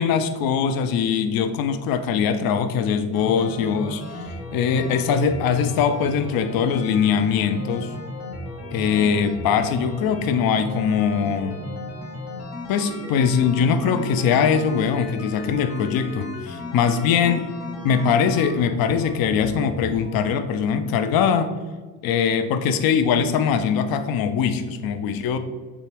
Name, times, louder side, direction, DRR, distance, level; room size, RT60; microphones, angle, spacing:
voice 1, 0.0-4.0 4.5-7.9 8.7-11.6 12.7-17.5 17.8-21.5 22.0-25.4, left 7 dB, 50° left, 10 dB, 0.6 m, -22 dB
sound 1, 3.1-20.2, left 1 dB, 35° left, 1.2 m, -35 dB
6.5 x 2.5 x 3.2 m, 1.4 s
hypercardioid pair, 60°, 47 cm